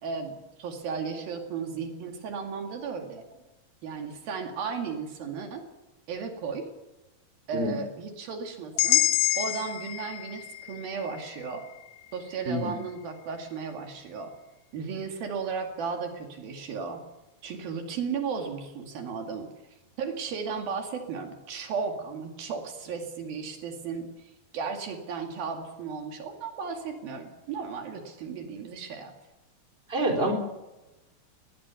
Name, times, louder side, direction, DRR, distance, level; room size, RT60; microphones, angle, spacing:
voice 1, 0.0-3.2 3.8-5.6 6.1-6.7 7.5-9.0 9.4-11.6 12.1-14.3 14.7-17.0 17.4-19.5 20.0-29.1, right 5 dB, 75° right, 4 dB, 4.1 m, -35 dB
sound 1, 8.8-12.8, left 15 dB, 75° left, 2.5 m, -29 dB
voice 2, 29.9-30.3, right 1 dB, 15° right, 2 dB, 4.0 m, -26 dB
21.5 x 20.0 x 7.1 m, 1.0 s
omnidirectional pair, 4.3 m